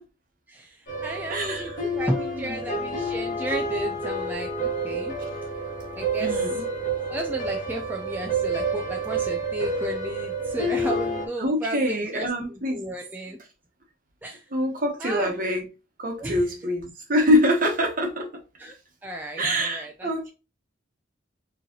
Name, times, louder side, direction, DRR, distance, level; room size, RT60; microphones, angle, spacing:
voice 1, 0.5-5.1 6.0-6.6 7.1-13.4 14.2-14.5 15.0-15.4 16.2-16.5 18.6-18.8 19.0-20.1, right 1 dB, 10° right, 0.4 m, -33 dB
sound 1, 0.9-11.3, right 2 dB, 45° left, 1.5 m, -29 dB
voice 2, 1.3-1.7 2.4-2.9 6.2-6.6 11.4-12.8 14.5-15.6 16.0-18.3 19.4-20.3, equal, 45° right, 1.1 m, -25 dB
4.7 x 3.1 x 2.9 m
head